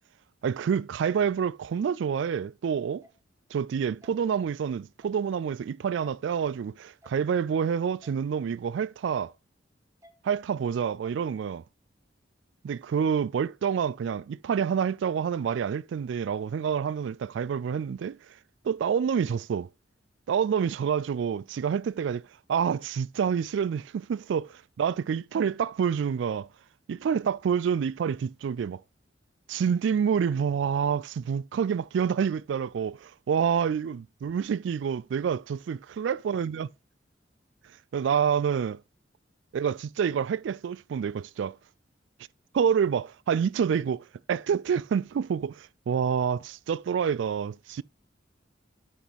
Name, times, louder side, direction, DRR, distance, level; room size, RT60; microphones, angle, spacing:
voice 1, 0.4-3.0 3.5-9.3 10.2-11.6 12.6-18.2 18.6-19.7 20.3-24.4 24.8-26.5 26.9-28.8 29.5-36.7 37.9-38.8 39.5-41.6 42.5-47.8, right 7 dB, 75° right, 0.3 m, -28 dB
sound 1, 3.0-3.1 4.0-4.1 5.0-5.2 6.0-6.1 7.0-7.2 8.0-8.1 9.0-9.2 10.0-10.1 11.0-11.2, left 1 dB, 15° right, 1.2 m, -55 dB
8.3 x 6.0 x 3.5 m
head